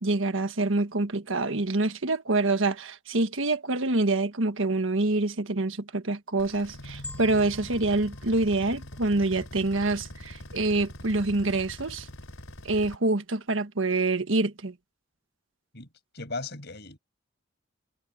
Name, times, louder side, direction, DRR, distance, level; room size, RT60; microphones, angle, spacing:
voice 1, 0.0-12.1 12.6-14.7, right 2 dB, 70° right, 1.5 m, -26 dB
sound 1, 6.4-13.0, left 1 dB, 75° left, 3.6 m, -43 dB
sound 2, 7.0-9.4 10.1-10.2, left 1 dB, 5° left, 7.9 m, -47 dB
voice 2, 15.7-17.0, left 3 dB, 55° left, 6.6 m, -38 dB
head